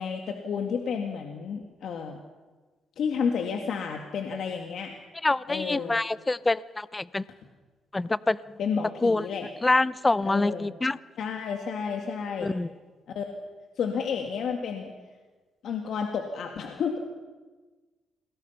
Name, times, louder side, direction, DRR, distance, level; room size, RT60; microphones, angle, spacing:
voice 1, 0.0-2.2 3.0-4.9 5.5-6.0 8.6-9.5 10.2-10.7 11.2-12.5 13.1-13.2 13.8-14.9 15.6-17.0, left 6 dB, 70° left, 3 dB, 2.1 m, -31 dB
voice 2, 5.2-7.2 7.9-8.4 9.0-9.3 9.6-11.0 12.4-12.7, left 2 dB, 20° left, 18 dB, 0.6 m, -25 dB
27.0 x 20.0 x 5.8 m, 1.3 s
cardioid pair, 90°, 0 cm